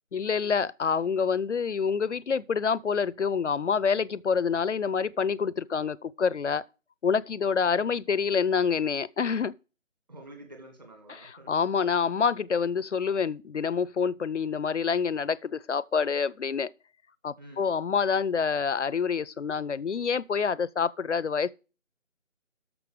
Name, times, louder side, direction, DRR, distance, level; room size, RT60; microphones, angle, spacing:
voice 1, 0.1-6.6 7.0-9.6 11.1-16.7 17.2-21.5, left 6 dB, 65° left, 0.6 m, -27 dB
voice 2, 7.6-8.0 10.1-11.5 17.4-17.8, right 1 dB, 35° right, 2.1 m, -49 dB
12.0 x 6.8 x 4.9 m
figure-of-eight pair, 180°, 39 cm